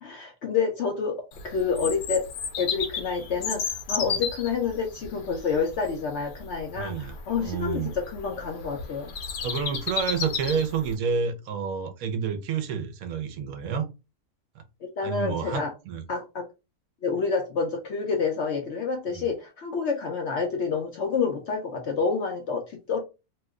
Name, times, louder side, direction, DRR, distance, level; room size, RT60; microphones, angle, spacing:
voice 1, 0.0-2.3 2.6-9.1 14.8-15.7 16.1-16.5 17.0-23.0, left 5 dB, 60° left, 0.8 m, -28 dB
Bird vocalization bird call bird song, 1.3-10.9, left 6 dB, 90° left, 1.2 m, -34 dB
voice 2, 6.7-7.9 9.4-13.9 14.6-14.7 15.0-16.0 19.1-19.2, right 6 dB, 70° right, 1.0 m, -29 dB
2.9 x 2.1 x 3.5 m
omnidirectional pair, 1.6 m